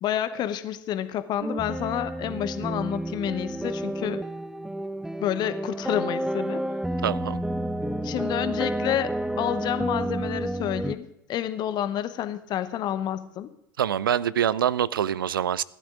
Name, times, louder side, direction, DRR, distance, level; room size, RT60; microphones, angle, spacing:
voice 1, 0.0-4.2 5.2-6.6 8.0-13.5, left 11 dB, 40° left, 13 dB, 0.9 m, -29 dB
sound 1, 1.4-11.0, right 1 dB, 5° right, 0.5 m, -30 dB
voice 2, 7.0-7.4 13.8-15.6, right 9 dB, 75° right, 21 dB, 0.4 m, -25 dB
15.0 x 12.0 x 3.7 m, 0.80 s
figure-of-eight pair, 80°, 11 cm